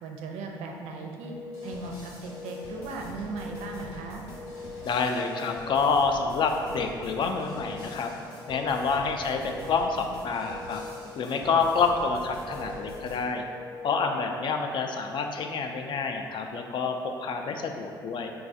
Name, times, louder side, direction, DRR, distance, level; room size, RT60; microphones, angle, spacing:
voice 1, 0.0-1.3 1.6-4.3, right 3 dB, 60° right, 2 dB, 0.4 m, -37 dB
Telephone, 1.2-1.8 2.3-2.8 3.3-3.8 4.3-4.9 5.3-5.9 6.3-6.9 7.4-7.9 8.4-8.9 9.4-10.0 10.4-11.0 11.4-12.0 12.5-13.0 13.5-14.0, left 5 dB, 10° right, 0.7 m, -42 dB
sound 1, 1.5-13.2, right 1 dB, 75° left, 0.9 m, -46 dB
voice 2, 4.8-8.1 8.5-10.8 11.2-13.4 13.8-18.3, left 4 dB, 40° left, 4 dB, 0.4 m, -28 dB
4.5 x 2.3 x 2.6 m, 2.2 s
hypercardioid pair, 55°, 12 cm